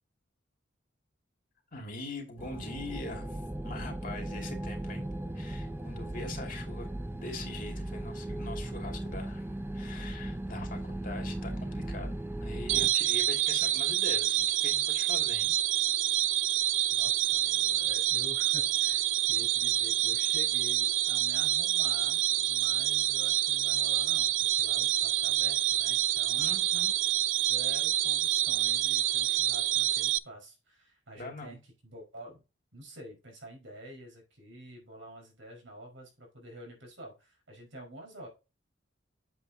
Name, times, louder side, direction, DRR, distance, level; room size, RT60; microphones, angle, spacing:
voice 1, 1.7-3.4 3.6-5.1 5.3-15.5 26.4-27.0 31.2-31.6, left 2 dB, 45° left, 2.4 m, -42 dB
sound 1, 2.4-12.9, right 1 dB, 10° right, 0.5 m, -37 dB
sound 2, 12.7-30.2, right 14 dB, 65° right, 0.3 m, -27 dB
voice 2, 16.9-26.5 27.3-32.4 32.7-38.3, right 1 dB, 85° right, 4.7 m, -48 dB
8.3 x 7.7 x 2.7 m
head